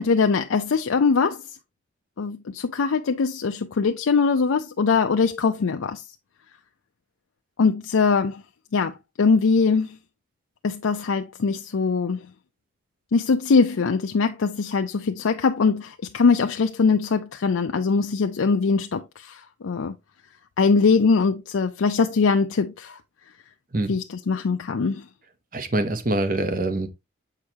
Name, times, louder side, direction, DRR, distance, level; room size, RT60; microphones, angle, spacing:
voice 1, 0.0-1.4 2.2-6.0 7.6-8.4 8.7-10.0 10.6-12.2 13.1-19.9 20.6-23.0 23.9-25.0, left 4 dB, 90° left, 0.5 m, -22 dB
voice 2, 25.5-26.9, right 2 dB, 45° right, 0.9 m, -24 dB
7.3 x 4.8 x 2.8 m
head